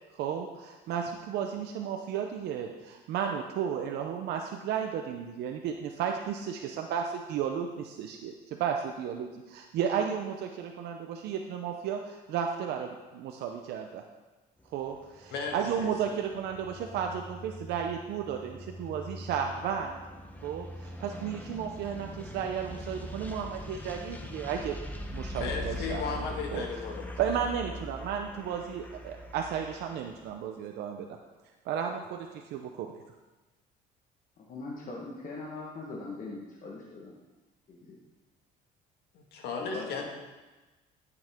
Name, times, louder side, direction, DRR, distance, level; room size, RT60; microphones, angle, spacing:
voice 1, 0.2-8.3 8.6-14.0 14.7-20.0 20.4-24.8 25.1-26.2 26.5-26.7 27.2-31.2 31.7-32.9, right 8 dB, 80° right, 3 dB, 0.8 m, -33 dB
sound 1, 14.6-30.3, left 1 dB, 10° left, 1.0 m, -42 dB
voice 2, 15.3-16.2 25.3-27.1 39.1-40.0, left 5 dB, 75° left, 1 dB, 2.0 m, -36 dB
voice 3, 34.5-37.1 37.7-38.0 39.6-40.0, left 3 dB, 55° left, -2 dB, 1.5 m, -41 dB
11.5 x 7.9 x 3.7 m, 1.2 s
cardioid pair, 110°, 17 cm